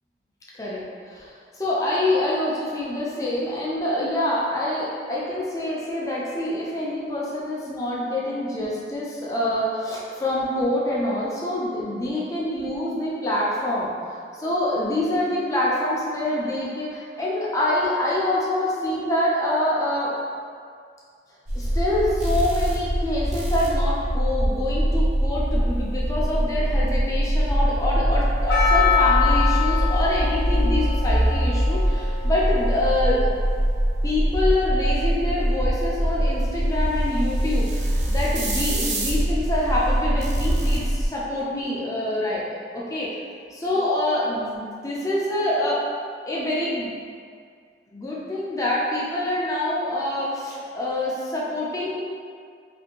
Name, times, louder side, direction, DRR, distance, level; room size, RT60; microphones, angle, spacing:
voice 1, 0.6-13.9 14.3-20.1 21.5-33.3 34.0-42.5 42.7-43.1 43.6-45.8 46.3-46.9 47.9-52.0, left 1 dB, 20° left, -6 dB, 0.4 m, -26 dB
sound 1, 21.5-41.1, equal, 40° right, 0.4 m, -23 dB
Percussion, 28.5-33.4, left 7 dB, 75° left, 0.6 m, -26 dB
2.6 x 2.5 x 2.8 m, 2.1 s
head